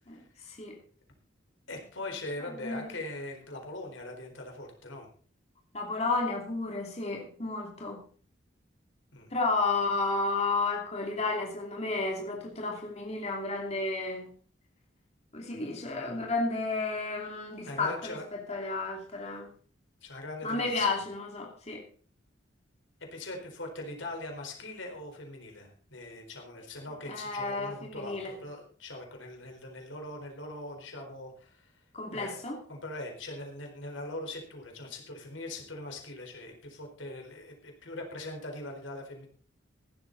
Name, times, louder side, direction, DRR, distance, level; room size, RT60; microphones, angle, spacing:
voice 1, 0.1-0.8 2.4-2.9 5.7-8.0 9.3-14.3 15.3-19.5 20.4-21.8 27.1-28.4 31.9-32.6, left 3 dB, 35° left, 0 dB, 2.7 m, -32 dB
voice 2, 1.7-5.1 9.1-9.3 17.7-18.3 20.0-20.9 23.1-31.7 32.1-32.4 32.7-39.3, left 2 dB, 90° left, 2 dB, 4.3 m, -41 dB
15.5 x 12.0 x 4.0 m, 0.42 s
head